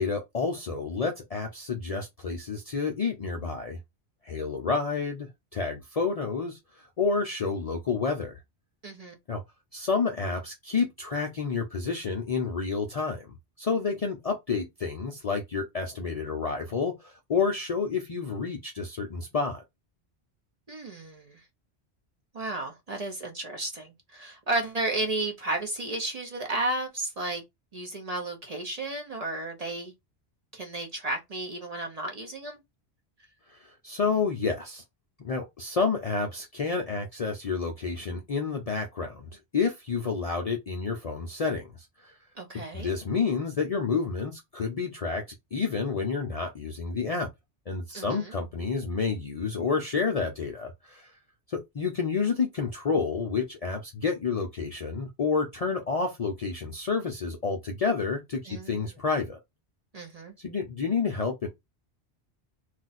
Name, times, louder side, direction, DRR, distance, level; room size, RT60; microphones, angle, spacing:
voice 1, 0.0-3.8 4.2-8.4 9.3-9.4 9.7-13.3 13.6-19.6 33.5-34.8 35.2-41.7 42.0-42.2 42.7-45.2 45.5-47.3 47.7-51.1 51.5-59.4 60.4-61.5, left 5 dB, 50° left, 0.5 m, -29 dB
voice 2, 8.8-9.1 20.7-21.4 22.3-27.4 27.7-29.9 30.5-32.6 42.4-42.9 47.9-48.3 58.5-58.9 59.9-60.3, right 2 dB, 40° right, 0.7 m, -33 dB
2.4 x 2.3 x 4.0 m
omnidirectional pair, 1.1 m